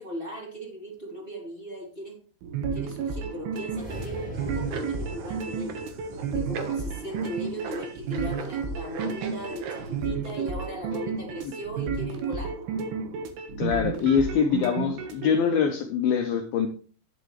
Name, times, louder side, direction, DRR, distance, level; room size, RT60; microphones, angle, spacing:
voice 1, 0.0-2.2 2.7-5.7 6.3-12.6, right 1 dB, 15° right, -2 dB, 2.6 m, -38 dB
sound 1, 2.4-15.3, right 5 dB, 65° right, 3.0 m, -32 dB
sound 2, 3.6-8.0, equal, ahead, 3.6 m, -42 dB
sound 3, 4.3-10.0, right 4 dB, 90° right, 1.6 m, -39 dB
voice 2, 13.6-16.7, left 7 dB, 90° left, 4 dB, 2.1 m, -24 dB
11.0 x 10.5 x 3.2 m, 0.41 s
omnidirectional pair, 5.6 m